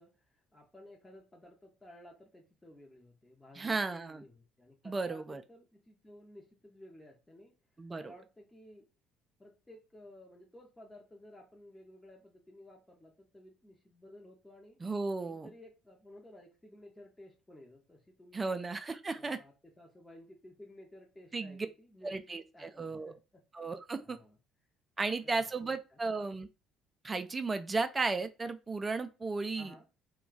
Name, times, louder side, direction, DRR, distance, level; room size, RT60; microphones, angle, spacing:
voice 1, 0.0-7.6 8.0-8.9 9.4-14.8 15.3-18.6 19.1-23.4 24.0-24.4 25.0-26.0 29.6-29.9, left 1 dB, 15° left, 0.7 m, -55 dB
voice 2, 3.6-4.2 4.8-5.4 7.8-8.1 14.8-15.5 18.3-19.4 21.3-21.7 22.0-23.2 23.5-24.2 25.0-26.5 27.0-29.7, right 3 dB, 25° right, 0.4 m, -35 dB
2.3 x 2.2 x 3.8 m
figure-of-eight pair, 55°, 0 cm